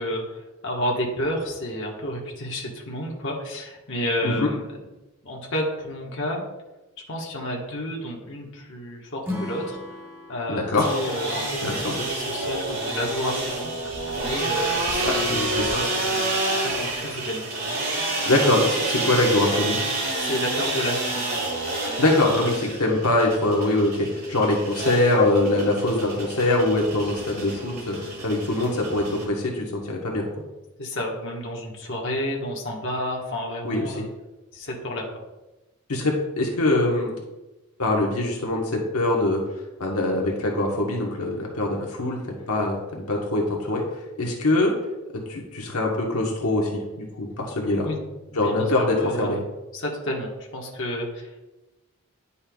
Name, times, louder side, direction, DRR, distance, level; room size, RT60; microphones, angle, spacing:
voice 1, 0.0-4.6 5.2-6.4 7.1-9.8 10.3-13.7 14.2-16.2 16.5-17.6 20.2-21.3 30.8-34.1 34.5-35.0 47.8-48.0 48.3-49.4 49.7-51.4, equal, 55° left, -2 dB, 1.3 m, -30 dB
Acoustic guitar / Strum, 9.2-12.5, left 2 dB, 10° right, 1.2 m, -37 dB
voice 2, 10.5-10.8 11.6-11.9 15.0-15.8 18.3-19.8 22.0-28.0 28.2-30.3 33.6-34.0 35.9-37.1 37.8-39.4 39.8-43.8 44.2-44.7 45.3-47.9 48.3-49.4, left 2 dB, 80° left, -1 dB, 1.2 m, -23 dB
sound 1, 10.8-29.3, right 2 dB, 45° right, 1.9 m, -29 dB
10.0 x 5.5 x 2.3 m, 1.0 s
head